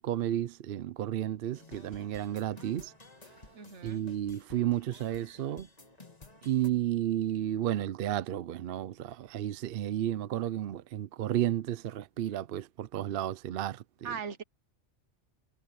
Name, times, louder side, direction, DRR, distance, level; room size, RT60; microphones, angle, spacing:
voice 1, 0.0-2.9 3.8-5.7 6.4-13.8, right 12 dB, 60° right, 0.7 m, -32 dB
sound 1, 1.5-6.7, left 3 dB, 35° left, 1.9 m, -54 dB
voice 2, 3.5-4.0 14.0-14.4, right 6 dB, 85° right, 1.5 m, -39 dB
omnidirectional pair, 1.2 m